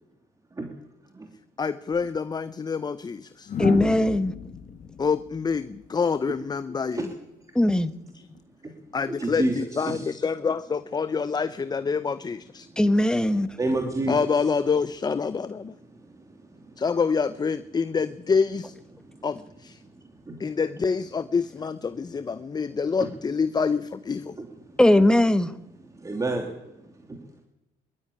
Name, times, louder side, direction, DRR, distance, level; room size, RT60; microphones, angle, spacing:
voice 1, 1.6-3.5 5.0-7.1 8.1-8.3 8.9-12.7 14.1-15.7 16.8-18.7 19.2-19.8 20.4-24.4, left 5 dB, 25° left, 0.7 m, -27 dB
sound 1, 1.9-2.1 3.5-6.5 8.1-8.4, left 7 dB, 50° left, 2.0 m, -33 dB
voice 2, 3.6-4.3 7.5-7.9 12.8-13.5 24.8-25.5, left 1 dB, 5° left, 1.3 m, -19 dB
voice 3, 9.2-10.1 13.6-14.5 20.3-20.4 23.0-23.1 24.4-24.5 26.0-26.5 27.1-27.2, right 2 dB, 20° right, 2.9 m, -28 dB
22.0 x 12.5 x 9.9 m
cardioid pair, 110°, 17 cm